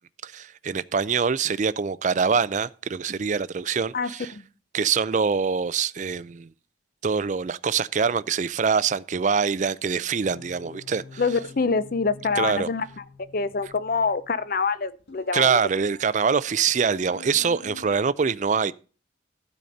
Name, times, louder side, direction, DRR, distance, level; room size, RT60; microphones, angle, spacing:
voice 1, 0.2-4.3 4.7-6.5 7.0-11.2 12.4-12.7 15.3-18.7, right 6 dB, 40° right, 0.4 m, -24 dB
sound 1, 10.3-17.9, left 3 dB, 65° left, 1.6 m, -48 dB
voice 2, 11.2-12.8 13.3-15.6, left 4 dB, 45° left, 0.6 m, -25 dB
12.5 x 4.2 x 6.5 m
head